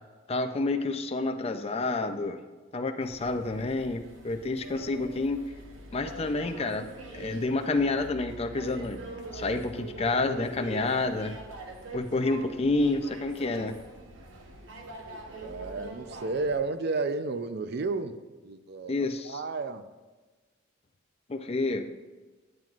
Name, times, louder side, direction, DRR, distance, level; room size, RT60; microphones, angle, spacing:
voice 1, 0.3-2.4 2.7-5.4 5.9-6.8 7.1-9.0 9.3-11.3 11.9-13.7 18.9-19.4 21.3-21.9, left 3 dB, 30° left, 6 dB, 0.5 m, -29 dB
sound 1, 3.0-16.6, right 2 dB, 75° right, 0.9 m, -43 dB
voice 2, 15.4-18.9 19.2-19.9, right 3 dB, 55° right, 10 dB, 0.5 m, -32 dB
10.5 x 7.7 x 2.5 m, 1.3 s
head